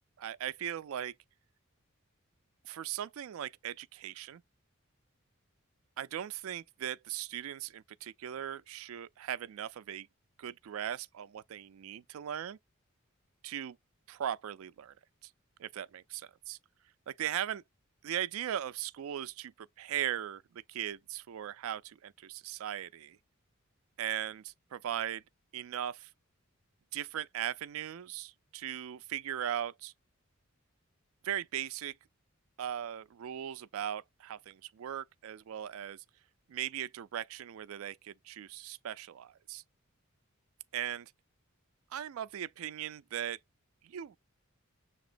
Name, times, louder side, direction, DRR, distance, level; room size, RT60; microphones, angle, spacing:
voice 1, 0.2-1.1 2.6-4.4 6.0-10.1 10.4-12.6 13.4-13.8 14.1-14.9 15.6-16.6 17.1-17.6 18.0-23.2 24.0-25.2 25.5-26.1 26.9-29.9 31.2-32.0 32.6-36.0 36.5-39.6 40.7-41.1 41.9-43.4 43.8-44.2, right 10 dB, 75° right, 0.3 m, -38 dB
6.8 x 3.0 x 2.5 m
head